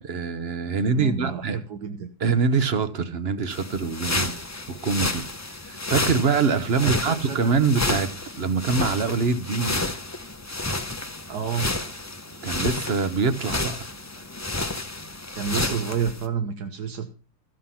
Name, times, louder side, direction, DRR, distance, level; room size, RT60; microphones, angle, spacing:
voice 1, 0.0-1.6 2.2-4.3 4.7-5.2 5.7-9.8 12.4-13.9, right 5 dB, 45° right, 1.1 m, -24 dB
voice 2, 0.9-2.1 6.8-7.4 11.3-11.7 14.2-14.3 15.3-17.1, right 7 dB, 85° right, 1.8 m, -30 dB
sound 1, 3.5-16.3, left 2 dB, 15° left, 0.5 m, -30 dB
14.5 x 7.6 x 5.7 m
omnidirectional pair, 1.7 m